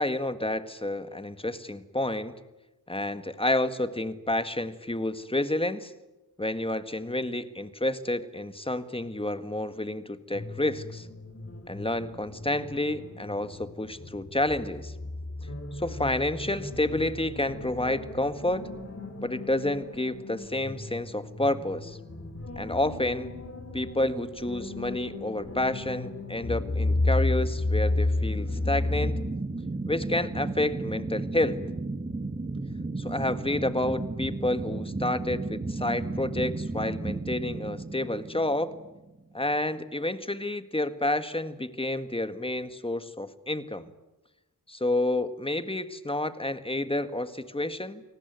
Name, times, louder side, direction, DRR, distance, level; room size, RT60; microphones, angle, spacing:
voice 1, 0.0-2.3 2.9-5.9 6.4-11.1 11.7-14.9 15.7-18.6 19.2-22.0 22.6-23.3 23.7-29.2 29.9-31.6 33.0-38.7 39.3-43.9 44.7-48.0, left 1 dB, 15° left, 11 dB, 1.8 m, -29 dB
sound 1, 10.3-29.3, left 2 dB, 40° left, 3.6 m, -33 dB
sound 2, 28.2-39.1, right 2 dB, 25° right, 1.8 m, -34 dB
28.5 x 19.5 x 9.4 m, 1.0 s
wide cardioid pair, 70°, 34 cm